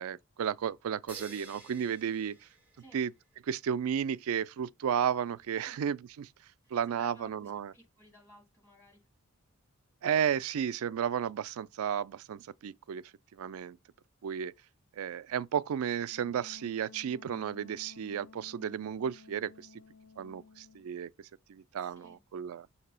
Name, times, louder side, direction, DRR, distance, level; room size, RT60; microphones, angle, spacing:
voice 1, 0.0-2.4 2.9-3.1 3.5-6.3 6.7-7.7 10.0-13.1 13.4-13.8 14.2-14.5 15.0-19.7 20.2-21.1 21.5-22.7, right 8 dB, 75° right, 0.3 m, -33 dB
sound 1, 1.1-3.2, right 3 dB, 5° right, 0.9 m, -52 dB
voice 2, 2.7-3.1 5.7-5.8 6.6-9.1 21.7-22.2, left 1 dB, 10° left, 2.8 m, -57 dB
Wind instrument woodwind instrument, 16.1-20.9, left 4 dB, 80° left, 0.7 m, -55 dB
6.6 x 2.8 x 5.4 m
head